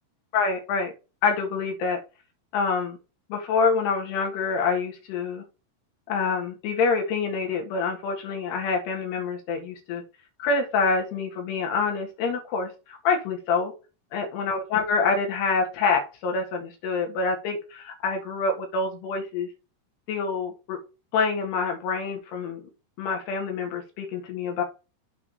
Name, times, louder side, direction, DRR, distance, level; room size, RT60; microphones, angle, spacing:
voice 1, 0.3-0.9 1.2-2.0 2.5-3.0 3.3-5.4 6.1-10.0 10.4-13.7 14.1-19.5 20.1-20.8 21.1-22.6 23.0-24.6, left 4 dB, 85° left, 2 dB, 3.9 m, -26 dB
8.3 x 3.6 x 6.6 m, 0.32 s
omnidirectional pair, 4.6 m